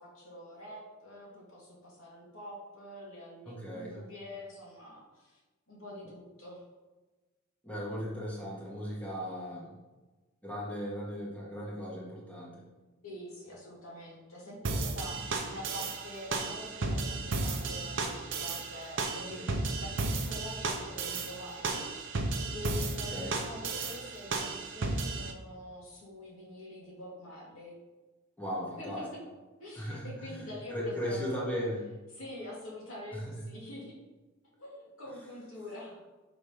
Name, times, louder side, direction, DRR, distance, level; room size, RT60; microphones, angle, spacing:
voice 1, 0.0-5.4 5.7-6.6 13.0-27.8 28.8-29.2 29.6-31.5 32.1-34.0 34.6-36.0, left 1 dB, 80° left, -4 dB, 2.2 m, -45 dB
voice 2, 3.5-4.1 7.6-9.8 10.4-12.6 19.3-19.5 23.1-23.4 28.4-29.0 29.7-30.4 30.7-31.8 33.1-33.4, equal, 5° left, -6 dB, 1.7 m, -37 dB
sound 1, 14.6-25.3, right 3 dB, 65° right, 0.8 m, -34 dB
6.1 x 4.0 x 5.1 m, 1.2 s
head